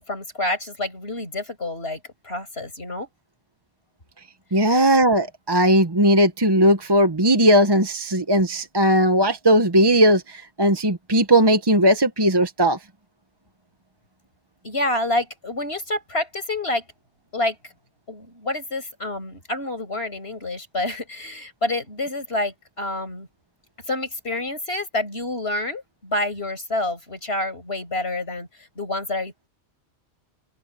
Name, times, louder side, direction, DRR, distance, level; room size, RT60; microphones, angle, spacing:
voice 1, 0.1-3.1 4.5-4.7 14.6-16.8 17.3-17.6 18.1-23.3 23.9-28.5 28.8-29.5, left 2 dB, 60° left, 6.3 m, -28 dB
voice 2, 4.5-12.8, right 1 dB, 20° right, 1.1 m, -18 dB
open air
omnidirectional pair, 1.2 m